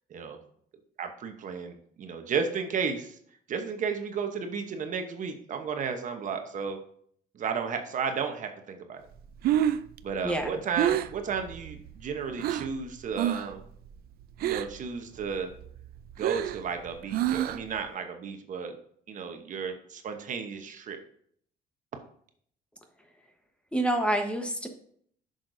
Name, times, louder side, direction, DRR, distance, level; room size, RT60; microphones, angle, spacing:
voice 1, 1.0-3.2 3.5-6.8 7.3-9.0 10.0-13.6 14.4-15.5 16.2-18.8 19.1-21.0, right 6 dB, 50° right, 6 dB, 1.0 m, -33 dB
Breathing, 9.2-12.8 13.1-13.6 13.9-14.9 15.2-17.8, right 11 dB, 65° right, 0.4 m, -29 dB
voice 2, 23.7-24.7, right 1 dB, 5° left, 4 dB, 1.1 m, -27 dB
10.0 x 6.4 x 2.7 m, 0.63 s
cardioid pair, 110°, 17 cm